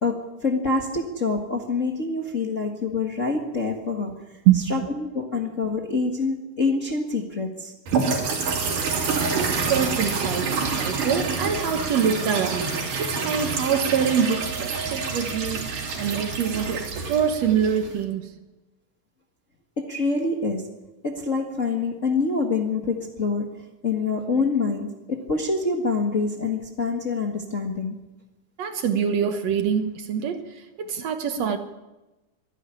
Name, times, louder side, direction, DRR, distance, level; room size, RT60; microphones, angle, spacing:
voice 1, 0.0-4.3 4.7-7.7 19.8-20.7 21.0-27.9, left 3 dB, 35° left, 1.4 m, -26 dB
sound 1, 7.9-18.0, right 4 dB, 90° right, 4.6 m, -27 dB
voice 2, 9.4-18.3 28.6-31.6, right 8 dB, 60° right, 2.2 m, -25 dB
24.0 x 11.0 x 9.9 m
omnidirectional pair, 3.6 m